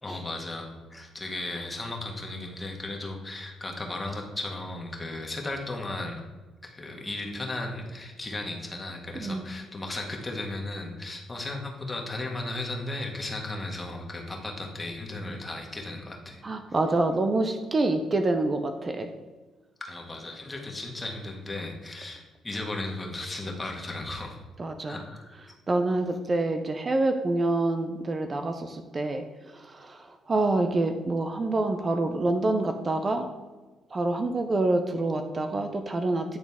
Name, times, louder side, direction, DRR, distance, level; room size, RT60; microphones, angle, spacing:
voice 1, 0.0-6.2 6.6-16.4 19.8-24.4 24.9-25.3, left 2 dB, 20° left, 1 dB, 1.5 m, -35 dB
voice 2, 9.2-9.5 16.4-19.1 24.6-25.0 25.7-33.3 33.9-36.4, right 2 dB, 35° right, 6 dB, 0.5 m, -27 dB
9.5 x 3.9 x 3.5 m, 1.3 s
supercardioid pair, 70°, 0 cm